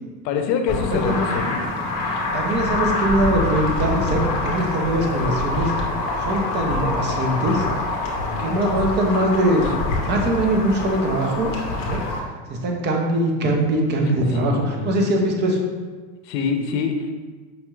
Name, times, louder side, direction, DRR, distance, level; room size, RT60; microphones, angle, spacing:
voice 1, 0.2-1.6 8.0-8.8 14.3-15.0 16.2-17.1, left 6 dB, 80° left, 5 dB, 0.7 m, -26 dB
sound 1, 0.7-12.2, left 2 dB, 40° left, 0.8 m, -25 dB
voice 2, 2.3-5.7 6.2-7.6 8.4-9.7 10.0-11.5 11.8-12.0 12.5-15.6, right 1 dB, 25° right, 1 dB, 0.4 m, -22 dB
5.3 x 2.8 x 2.3 m, 1.4 s
supercardioid pair, 115°, 49 cm